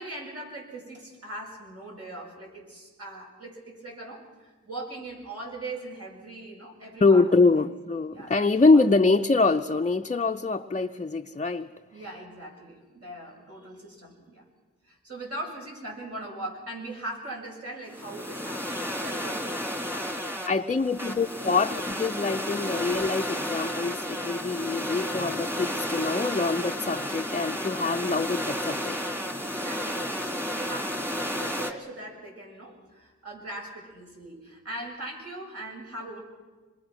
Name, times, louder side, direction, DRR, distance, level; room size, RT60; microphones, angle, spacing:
voice 1, 0.0-7.3 7.5-7.6 8.1-8.8 11.9-14.4 14.8-20.4 21.0-21.1 21.5-21.6 29.4-36.2, right 2 dB, 55° right, -1 dB, 7.5 m, -40 dB
voice 2, 7.0-11.7 20.5-29.0, left 3 dB, 25° left, 5 dB, 0.6 m, -24 dB
sound 1, 17.9-31.7, equal, 10° right, 2.5 m, -32 dB
26.5 x 22.0 x 6.2 m, 1.3 s
wide cardioid pair, 65°, 29 cm